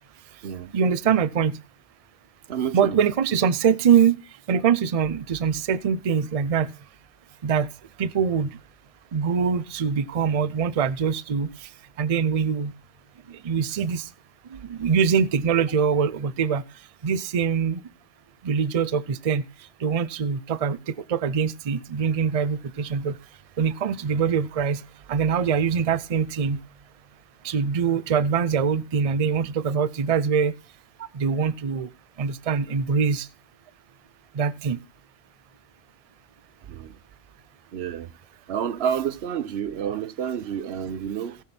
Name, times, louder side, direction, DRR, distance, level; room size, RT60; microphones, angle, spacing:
voice 1, 0.7-1.6 2.7-4.2 4.5-6.7 7.4-7.7 8.0-8.5 9.1-11.5 12.0-12.7 13.4-14.1 14.5-16.6 17.0-17.8 18.4-19.4 19.8-23.1 23.6-24.8 25.1-26.6 27.4-30.5 31.1-31.9 32.2-33.3 34.3-34.8, right 6 dB, 45° right, 0.6 m, -23 dB
voice 2, 2.5-3.0 31.0-31.1 36.6-37.0 37.7-38.1 38.5-41.4, right 8 dB, 85° right, 1.0 m, -29 dB
17.5 x 6.0 x 4.3 m
omnidirectional pair, 1.0 m